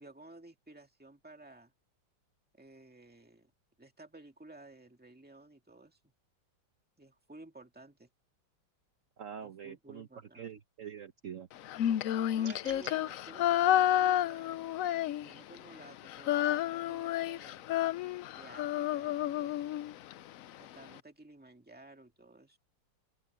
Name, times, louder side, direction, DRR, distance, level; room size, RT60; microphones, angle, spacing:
voice 1, 0.0-1.7 2.5-3.5 3.8-6.1 7.0-8.1 9.4-10.5 12.4-14.8 15.2-17.7 18.3-19.7 20.6-22.6, right 2 dB, 5° right, 1.7 m, -54 dB
voice 2, 9.2-10.1 10.3-11.5, right 8 dB, 50° right, 1.1 m, -45 dB
Female singing, 11.7-15.6 15.8-20.1, left 12 dB, 80° left, 0.7 m, -30 dB
sound 1, 12.4-13.0, right 4 dB, 35° right, 1.9 m, -48 dB
open air
omnidirectional pair, 2.0 m